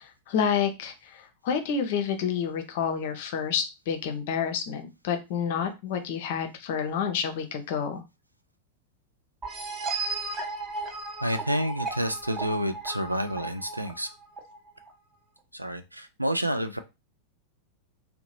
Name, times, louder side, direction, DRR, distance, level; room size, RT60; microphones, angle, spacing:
voice 1, 0.0-8.0, left 7 dB, 50° left, 7 dB, 0.5 m, -29 dB
sound 1, 9.4-14.9, right 3 dB, 20° right, 0.7 m, -35 dB
voice 2, 11.2-14.1 15.5-16.8, equal, 85° right, 9 dB, 0.3 m, -29 dB
2.7 x 2.0 x 3.0 m, 0.25 s
figure-of-eight pair, 90°, 0 cm